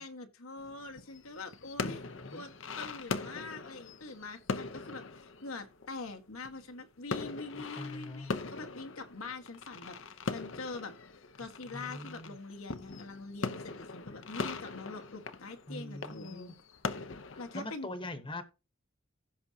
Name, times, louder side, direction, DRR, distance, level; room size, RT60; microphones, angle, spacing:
voice 1, 0.0-2.0 2.3-10.9 11.4-16.5 17.4-17.9, left 3 dB, 85° left, 1.7 m, -44 dB
sound 1, 0.6-6.8 7.1-17.7, left 4 dB, 65° left, 0.8 m, -41 dB
voice 2, 1.8-2.5 7.5-8.3 11.7-12.3 15.7-16.5 17.5-18.4, left 1 dB, 25° left, 1.2 m, -43 dB
16.0 x 6.1 x 2.9 m
head